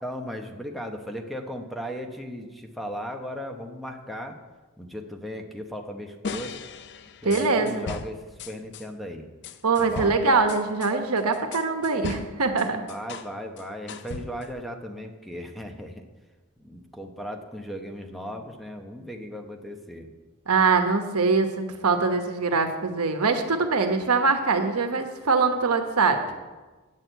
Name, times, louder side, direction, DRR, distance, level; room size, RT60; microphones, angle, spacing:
voice 1, 0.0-4.4 4.8-6.5 7.2-9.3 9.8-10.1 12.9-16.0 16.6-20.1, equal, ahead, 3 dB, 0.9 m, -37 dB
sound 1, 6.2-8.9 9.4-13.3 13.6-14.6, left 5 dB, 50° left, 0.5 m, -38 dB
voice 2, 7.2-7.9 9.6-12.8 20.5-26.2, right 4 dB, 90° right, 6 dB, 1.1 m, -23 dB
9.2 x 6.5 x 8.0 m, 1.3 s
head